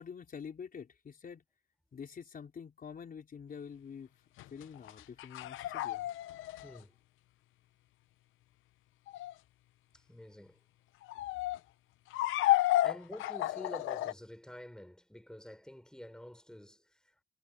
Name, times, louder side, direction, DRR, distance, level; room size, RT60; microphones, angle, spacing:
voice 1, 0.0-1.4 1.9-4.2 4.5-6.1, left 6 dB, 45° left, 4.5 m, -47 dB
sound 1, 4.4-6.8 9.1-9.3 11.0-11.6 12.1-14.1, left 15 dB, 90° left, 0.8 m, -32 dB
voice 2, 6.6-7.0 9.9-10.6 12.8-17.2, left 1 dB, 5° left, 5.5 m, -49 dB
cardioid pair, 90°, 20 cm